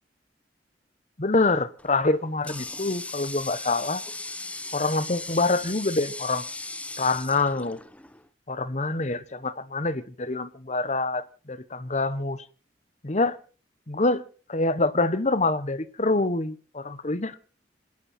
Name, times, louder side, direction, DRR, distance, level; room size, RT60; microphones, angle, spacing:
voice 1, 1.2-4.0 4.7-6.5 7.0-7.8 8.5-12.4 13.0-13.4 13.9-14.2 14.5-17.4, left 3 dB, 40° left, 1.0 m, -26 dB
Water tap faucet, 1.8-8.3, left 2 dB, 10° left, 0.8 m, -38 dB
27.0 x 10.5 x 4.3 m
head